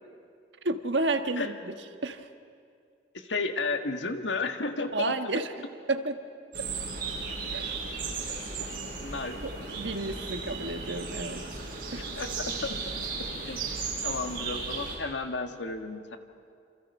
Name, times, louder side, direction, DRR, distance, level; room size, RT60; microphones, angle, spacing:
voice 1, 0.6-1.8 2.0-2.3 4.9-5.5 5.9-6.2 6.6-6.7 7.5-7.8 9.4-9.5 9.8-11.4 11.9-12.1, right 2 dB, 80° right, 7 dB, 1.4 m, -31 dB
voice 2, 3.1-5.1 9.0-9.4 12.2-12.3 12.6-12.7 13.4-13.6 14.0-16.2, left 3 dB, 85° left, 6 dB, 1.7 m, -32 dB
sound 1, 6.5-14.9, right 4 dB, 50° right, 7.7 m, -35 dB
27.5 x 27.5 x 5.5 m, 2.3 s
head